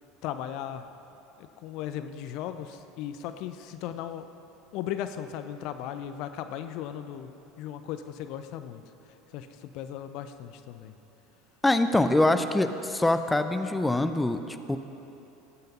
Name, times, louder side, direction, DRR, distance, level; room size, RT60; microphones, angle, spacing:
voice 1, 0.2-0.8 1.4-4.3 4.7-7.3 7.6-8.8 9.3-10.9, left 10 dB, 55° left, 10 dB, 0.6 m, -37 dB
voice 2, 11.6-14.8, left 2 dB, 10° left, 9 dB, 0.7 m, -24 dB
18.0 x 9.2 x 5.5 m, 3.0 s
figure-of-eight pair, 70°, 0 cm